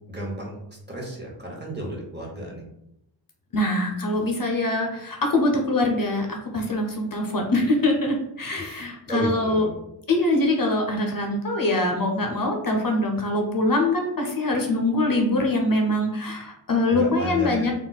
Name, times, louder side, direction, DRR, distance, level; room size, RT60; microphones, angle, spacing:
voice 1, 0.1-0.6 0.9-2.6 8.6-8.8 9.1-9.7 16.9-17.7, right 1 dB, 25° right, -2 dB, 0.9 m, -32 dB
voice 2, 3.5-9.7 10.1-17.7, left 2 dB, 50° left, 2 dB, 0.6 m, -23 dB
2.4 x 2.0 x 3.9 m, 0.82 s
wide cardioid pair, 40°, 44 cm